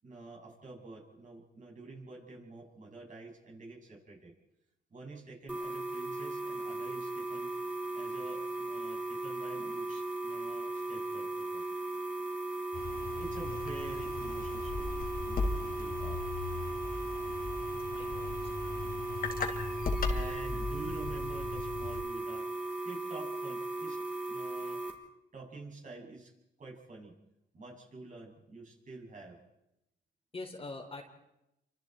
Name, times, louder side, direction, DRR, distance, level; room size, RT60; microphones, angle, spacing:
voice 1, 0.0-4.3 4.9-7.5 7.9-11.6 13.2-16.2 19.4-22.5 22.8-24.0 24.3-24.8 25.3-26.3 26.6-27.2 27.5-29.4, right 3 dB, 40° right, -1 dB, 7.0 m, -48 dB
lamp harmonic hum, 5.5-24.9, right 2 dB, 10° right, 6.0 m, -37 dB
sound 1, 12.7-22.0, left 3 dB, 45° left, 3.8 m, -37 dB
voice 2, 17.9-18.8 30.3-31.0, left 2 dB, 30° left, 3 dB, 4.0 m, -45 dB
29.0 x 25.5 x 4.6 m, 0.87 s
cardioid pair, 90°, 20 cm